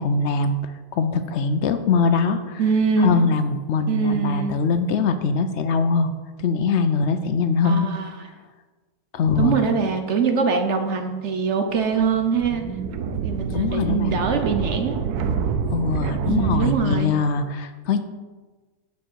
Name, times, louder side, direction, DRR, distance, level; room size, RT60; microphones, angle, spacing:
voice 1, 0.0-2.6 3.0-6.1 6.4-7.9 9.1-9.6 13.5-14.2 15.7-18.0, left 4 dB, 65° left, 9 dB, 0.7 m, -22 dB
voice 2, 2.6-3.3 3.9-4.6 7.6-8.1 9.4-12.6 13.2-14.9 16.3-17.1, right 5 dB, 55° right, 5 dB, 0.9 m, -23 dB
sound 1, 11.7-16.8, right 6 dB, 75° right, 1.2 m, -27 dB
8.9 x 7.0 x 4.6 m, 1.3 s
omnidirectional pair, 1.7 m